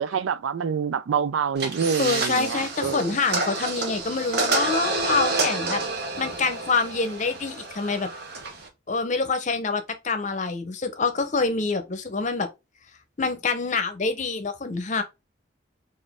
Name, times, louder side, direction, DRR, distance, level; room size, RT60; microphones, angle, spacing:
voice 1, 0.0-3.0, right 7 dB, 90° right, 0.4 m, -26 dB
sound 1, 1.6-8.7, right 3 dB, 55° right, 1.0 m, -29 dB
voice 2, 2.0-8.1 8.9-12.5 13.2-15.0, left 4 dB, 40° left, 0.7 m, -26 dB
4.1 x 2.5 x 3.5 m
head